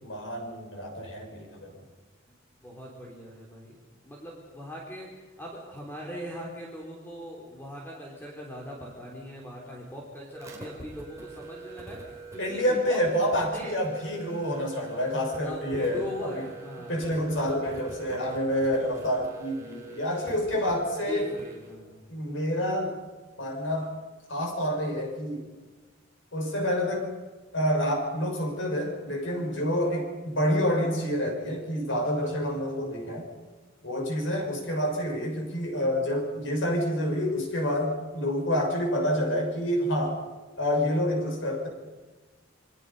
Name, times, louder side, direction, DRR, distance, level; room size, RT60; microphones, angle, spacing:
voice 1, 0.0-1.7 12.4-16.3 16.9-21.3 22.1-22.9 23.4-23.9 24.3-25.5 26.3-27.1 27.5-33.3 33.8-40.2 40.6-41.7, equal, 75° left, 2 dB, 6.2 m, -28 dB
voice 2, 2.6-3.8 4.0-13.7 15.4-17.1 21.1-22.0 30.1-30.2, equal, 10° left, -2 dB, 3.6 m, -41 dB
sound 1, 10.3-21.7, right 4 dB, 15° right, 4.1 m, -44 dB
27.5 x 22.0 x 5.5 m, 1.3 s
head